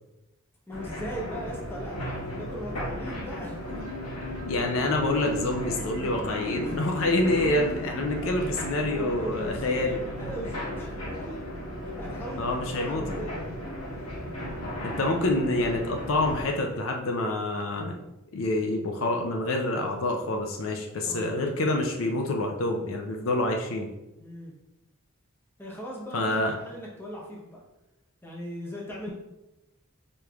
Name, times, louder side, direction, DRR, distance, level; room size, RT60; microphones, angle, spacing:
sound 1, 0.7-16.5, equal, 85° left, 1.2 m, -36 dB
voice 1, 0.7-3.9 6.5-6.8 8.8-11.4 11.8-13.4 21.0-21.4 24.2-24.5 25.6-27.6 28.2-29.1, equal, 10° left, -3 dB, 0.8 m, -39 dB
Marimba xylophone, 3.7-8.8, left 2 dB, 60° right, 1.0 m, -41 dB
voice 2, 4.5-10.0 12.4-13.0 14.8-17.9 18.3-23.9 26.1-26.5, left 2 dB, 65° left, 2 dB, 0.5 m, -27 dB
5.0 x 3.1 x 2.3 m, 0.98 s
head